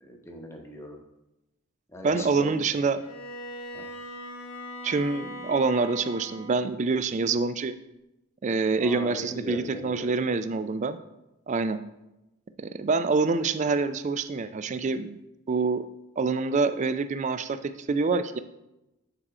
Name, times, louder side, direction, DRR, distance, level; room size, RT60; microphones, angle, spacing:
voice 1, 0.0-1.0 1.9-2.6 3.7-3.9 8.8-10.1, left 1 dB, 10° left, 1 dB, 0.8 m, -39 dB
voice 2, 2.0-3.0 4.8-7.8 8.4-11.0 11.5-11.8 12.6-15.1 15.5-15.8 16.2-18.4, right 4 dB, 30° right, 11 dB, 0.3 m, -26 dB
Bowed string instrument, 3.0-6.7, equal, 65° left, 0.8 m, -40 dB
6.9 x 4.3 x 4.8 m, 0.94 s
head